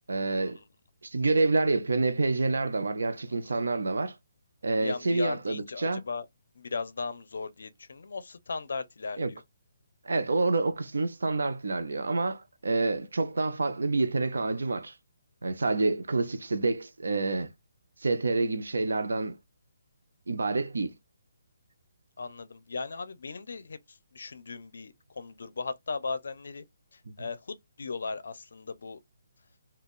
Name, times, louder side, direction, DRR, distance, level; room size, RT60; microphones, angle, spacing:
voice 1, 0.1-0.6 1.0-4.1 4.6-6.0 9.2-9.3 10.0-14.9 15.4-17.5 18.0-19.4 20.3-21.0, right 3 dB, 85° right, 0.5 m, -28 dB
voice 2, 4.8-6.2 6.5-9.4 22.2-26.6 26.9-29.0, left 4 dB, 75° left, 0.5 m, -37 dB
2.4 x 2.3 x 3.5 m
hypercardioid pair, 160°, 0 cm